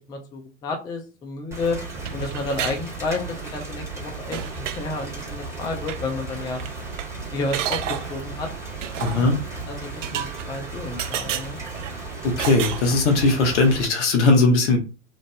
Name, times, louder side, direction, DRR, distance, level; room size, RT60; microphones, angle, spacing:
voice 1, 0.1-1.8 2.1-6.6 7.3-8.5 8.9-9.4 9.7-11.6, left 3 dB, 10° left, 3 dB, 0.4 m, -31 dB
Rain, 1.5-13.8, right 3 dB, 5° right, 1.4 m, -35 dB
sound 1, 1.9-2.8 3.1-3.6 3.9-4.0 4.3-4.8 5.8-6.0 6.3-6.4 6.6-7.1 7.5-8.2 8.8-9.3 10.0-10.7 11.0-11.9 12.4-13.4, right 10 dB, 80° right, 0.5 m, -31 dB
voice 2, 9.0-9.4 12.2-14.8, left 3 dB, 70° left, 3 dB, 1.2 m, -19 dB
3.0 x 2.5 x 2.2 m, 0.32 s
hypercardioid pair, 105°, 37 cm